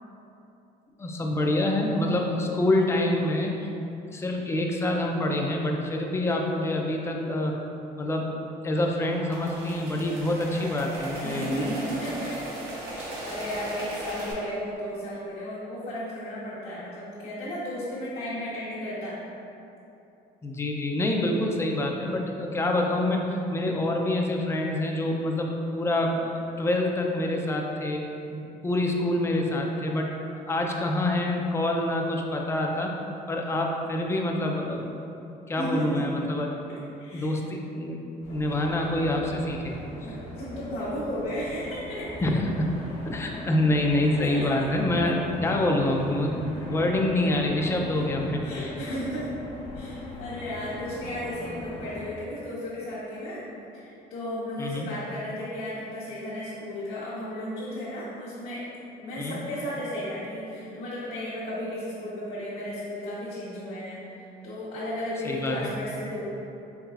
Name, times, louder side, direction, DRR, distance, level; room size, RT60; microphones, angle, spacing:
voice 1, 1.0-3.5 4.1-7.5 8.0-8.3 8.6-11.7 20.4-26.3 26.6-28.0 28.3-33.0 33.3-34.9 35.5-36.5 37.1-38.0 38.3-39.8 42.2-42.7 43.1-48.4 54.6-54.9 59.2-59.4 65.2-65.7, left 1 dB, 15° left, 1 dB, 0.4 m, -26 dB
sound 1, 8.7-14.3, right 1 dB, 75° right, 0.8 m, -38 dB
voice 2, 11.2-12.4 12.8-19.2 35.6-36.0 37.0-37.3 40.0-42.1 44.2-44.6 48.4-49.3 49.7-53.4 53.7-58.6 59.0-66.2, equal, 65° left, -10 dB, 0.9 m, -34 dB
sound 2, 38.2-52.0, left 2 dB, 90° left, 1.1 m, -40 dB
4.6 x 3.1 x 2.4 m, 2.8 s
cardioid pair, 110°, 17 cm